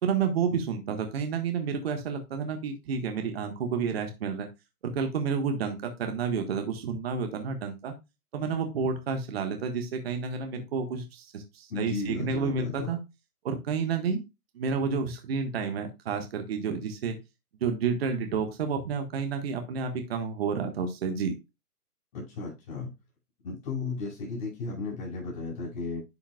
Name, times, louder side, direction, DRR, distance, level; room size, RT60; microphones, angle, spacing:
voice 1, 0.0-4.5 4.8-7.9 8.3-13.0 13.4-14.2 14.5-17.2 17.6-21.3, right 6 dB, 40° right, 6 dB, 1.4 m, -30 dB
voice 2, 11.7-13.0 22.1-22.9 23.4-26.0, left 4 dB, 30° left, -5 dB, 5.1 m, -34 dB
10.5 x 5.7 x 2.2 m, 0.23 s
hypercardioid pair, 155°, 47 cm